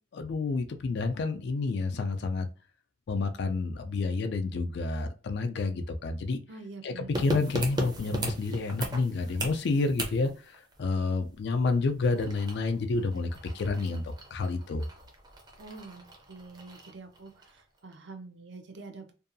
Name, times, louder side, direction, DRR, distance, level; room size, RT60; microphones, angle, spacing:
voice 1, 0.1-2.5 3.1-6.4 6.8-10.3 10.8-13.3 13.5-14.9, left 3 dB, 60° left, 0.4 m, -29 dB
voice 2, 6.5-7.5 15.6-19.1, right 3 dB, 70° right, 0.5 m, -46 dB
sound 1, 7.1-17.6 17.9-18.0, right 1 dB, 20° right, 0.5 m, -39 dB
2.6 x 2.3 x 2.5 m
head